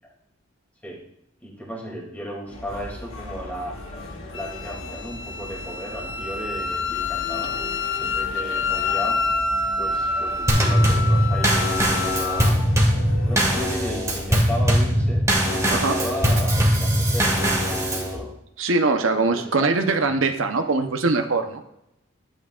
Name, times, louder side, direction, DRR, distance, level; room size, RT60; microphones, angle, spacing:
voice 1, 1.4-3.8 4.3-7.7 8.0-9.2 9.8-12.6 13.2-18.3 19.1-19.8, equal, 10° left, -3 dB, 2.6 m, -35 dB
sound 1, 2.5-14.3, left 2 dB, 90° left, 2.0 m, -38 dB
Wind instrument woodwind instrument, 4.3-12.5, left 4 dB, 60° left, 0.6 m, -27 dB
Drum kit / Snare drum / Bass drum, 10.5-18.2, equal, 15° right, 1.7 m, -21 dB
voice 2, 18.6-21.6, right 3 dB, 80° right, 6 dB, 0.8 m, -22 dB
12.5 x 8.6 x 2.4 m, 0.81 s
head